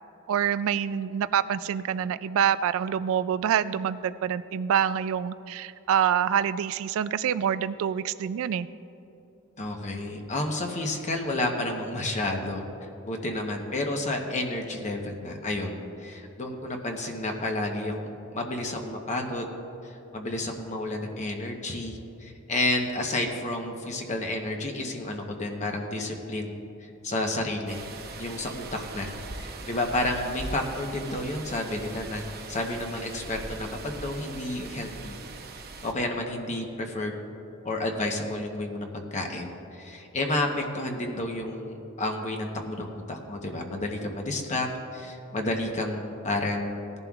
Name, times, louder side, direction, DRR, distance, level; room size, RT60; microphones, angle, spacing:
voice 1, 0.3-8.7, right 8 dB, 65° right, 15 dB, 0.3 m, -26 dB
voice 2, 9.6-12.6 13.0-17.9 18.3-19.5 19.8-26.5 26.8-27.8 28.2-32.2 32.5-35.2 35.8-37.1 37.6-46.9, left 2 dB, 35° left, 2 dB, 0.9 m, -31 dB
sound 1, 27.7-35.9, right 3 dB, 45° right, 0.8 m, -41 dB
18.5 x 11.0 x 2.4 m, 2.9 s
head